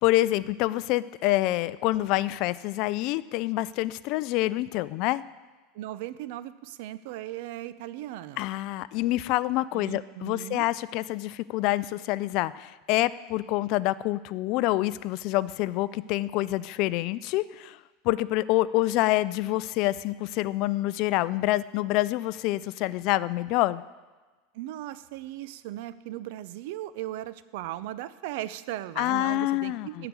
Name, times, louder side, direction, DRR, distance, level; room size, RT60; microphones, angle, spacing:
voice 1, 0.0-5.2 8.4-17.8 18.0-23.8 29.0-30.1, left 17 dB, 55° left, 17 dB, 0.3 m, -27 dB
voice 2, 5.7-8.5 9.7-10.7 24.5-30.1, right 14 dB, 70° right, 15 dB, 0.5 m, -37 dB
12.5 x 5.0 x 8.1 m, 1.3 s
supercardioid pair, 115°, 0 cm